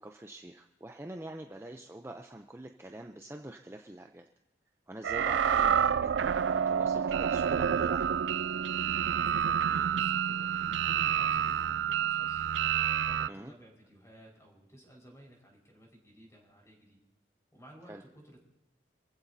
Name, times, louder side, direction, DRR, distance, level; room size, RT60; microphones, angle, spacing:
voice 1, 0.0-4.2 4.9-8.2 13.3-13.5 17.9-18.0, right 1 dB, 15° right, 4 dB, 0.6 m, -45 dB
sound 1, 5.0-13.3, right 8 dB, 80° right, 0.4 m, -28 dB
voice 2, 9.1-12.4 13.0-17.0 17.5-18.4, right 1 dB, 15° left, -1 dB, 5.1 m, -54 dB
26.5 x 15.5 x 2.8 m, 0.98 s
head